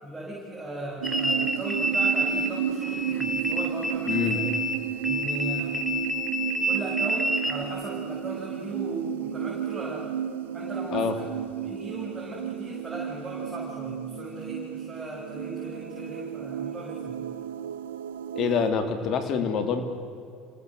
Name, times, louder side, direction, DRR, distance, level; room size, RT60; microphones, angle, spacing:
voice 1, 0.0-4.5 5.1-5.8 6.7-10.1 10.5-11.2 11.6-17.2, right 1 dB, 20° right, -4 dB, 7.5 m, -37 dB
sound 1, 1.0-2.6 2.8-7.6, equal, 5° right, 2.8 m, -28 dB
sound 2, 1.0-18.7, right 9 dB, 85° right, 0.9 m, -33 dB
voice 2, 4.1-4.4 10.9-11.2 18.3-19.8, left 6 dB, 55° left, 8 dB, 3.3 m, -26 dB
28.5 x 18.5 x 8.0 m, 2.4 s
hypercardioid pair, 80°, 0 cm